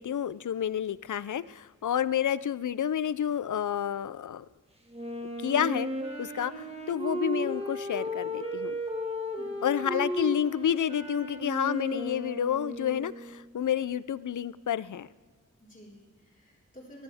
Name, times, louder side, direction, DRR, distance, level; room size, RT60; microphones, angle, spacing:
voice 1, 0.0-4.4 5.4-5.9 6.2-8.8 9.6-15.1, left 9 dB, 75° left, 18 dB, 0.4 m, -29 dB
Wind instrument woodwind instrument, 4.9-13.5, equal, 20° right, 1.8 m, -35 dB
voice 2, 9.4-9.8 15.6-17.0, equal, 25° left, -4 dB, 4.3 m, -51 dB
22.0 x 11.5 x 3.5 m, 1.4 s
wide cardioid pair, 65°, 31 cm